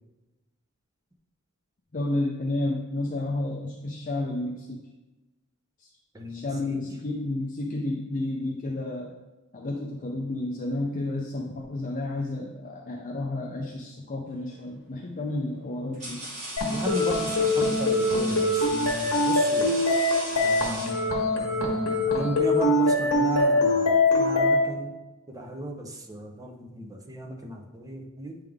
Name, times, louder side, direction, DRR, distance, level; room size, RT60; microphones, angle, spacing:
voice 1, 1.9-4.8 5.8-5.9 6.3-9.1 9.5-16.2, left 2 dB, 35° left, -1 dB, 0.5 m, -31 dB
voice 2, 6.1-6.8 16.6-19.8 20.4-25.0 25.3-28.4, right 1 dB, 15° right, 1 dB, 0.7 m, -35 dB
sound 1, 14.4-14.7 15.5-21.4, right 1 dB, 30° right, 1.7 m, -38 dB
sound 2, 16.6-24.6, left 2 dB, 80° left, 1.4 m, -23 dB
9.0 x 3.5 x 3.6 m, 1.1 s
head